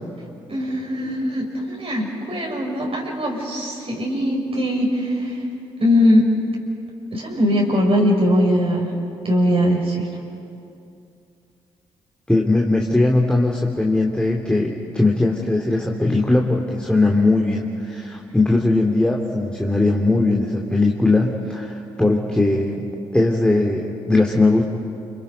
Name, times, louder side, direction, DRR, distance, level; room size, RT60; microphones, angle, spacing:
voice 1, 0.5-5.4 5.8-6.3 7.1-8.9 9.2-10.1, equal, 40° right, -1 dB, 5.8 m, -20 dB
voice 2, 12.3-22.8 23.1-24.6, left 2 dB, 5° left, 0 dB, 2.6 m, -19 dB
28.5 x 26.5 x 5.3 m, 2.6 s
hypercardioid pair, 40°, 15 cm